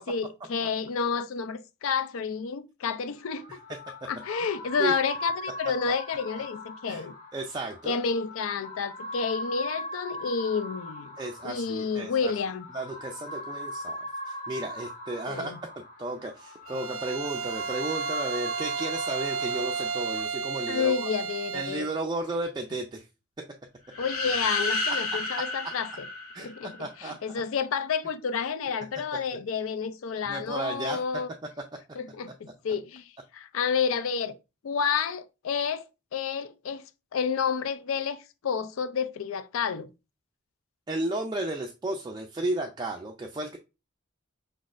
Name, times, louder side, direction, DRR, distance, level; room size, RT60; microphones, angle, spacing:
voice 1, 0.1-3.5 4.1-7.1 7.9-11.1 11.4-12.7 15.3-15.6 20.7-21.9 24.0-26.1 26.4-31.3 32.0-34.3 34.6-39.9, left 6 dB, 70° left, 0.4 m, -30 dB
sound 1, 3.2-20.2, left 1 dB, 35° left, 1.1 m, -40 dB
voice 2, 7.3-8.0 11.2-12.3 12.7-14.0 14.3-15.6 16.0-21.1 21.5-23.0 23.4-23.5 25.1-25.2 25.6-25.7 26.3-26.5 26.8-27.2 30.3-31.0 40.9-43.6, right 2 dB, 20° right, 0.4 m, -33 dB
Bowed string instrument, 16.7-21.9, right 6 dB, 80° right, 0.5 m, -33 dB
sound 2, 23.9-26.8, left 3 dB, 90° left, 1.6 m, -31 dB
5.2 x 4.0 x 2.5 m
head